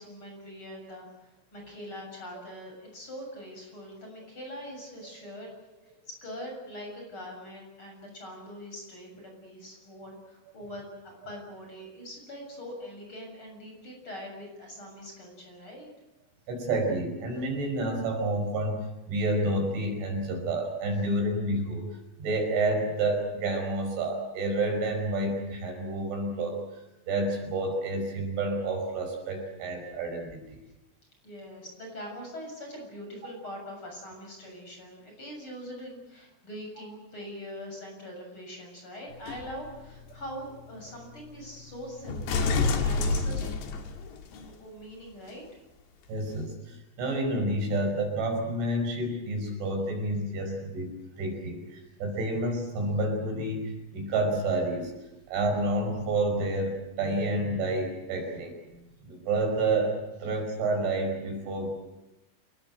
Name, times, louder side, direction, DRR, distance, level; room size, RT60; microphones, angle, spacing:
voice 1, 0.0-5.5 5.8-10.9 11.2-15.9 31.2-43.5 44.3-45.4, equal, 25° left, 1 dB, 7.7 m, -42 dB
voice 2, 16.5-21.8 22.2-30.6 46.1-50.9 51.2-54.9 55.3-58.8 59.0-61.8, right 2 dB, 65° right, 3 dB, 7.7 m, -29 dB
sound 1, 39.1-44.5 45.3-45.4, left 4 dB, 60° left, 3.8 m, -31 dB
29.0 x 19.5 x 7.9 m, 0.96 s
omnidirectional pair, 5.9 m